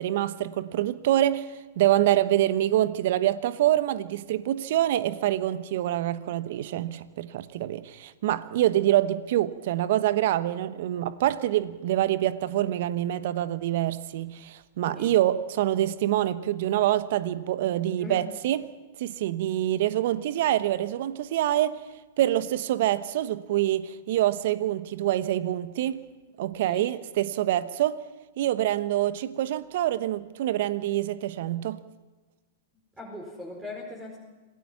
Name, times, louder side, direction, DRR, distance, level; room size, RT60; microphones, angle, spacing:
voice 1, 0.0-18.7 19.0-21.8 22.2-26.1 26.4-28.0 28.4-31.8, right 13 dB, 60° right, 1.0 m, -26 dB
voice 2, 33.0-34.2, left 2 dB, 10° right, 4.7 m, -39 dB
27.0 x 17.5 x 5.8 m
hypercardioid pair, 105°, 0 cm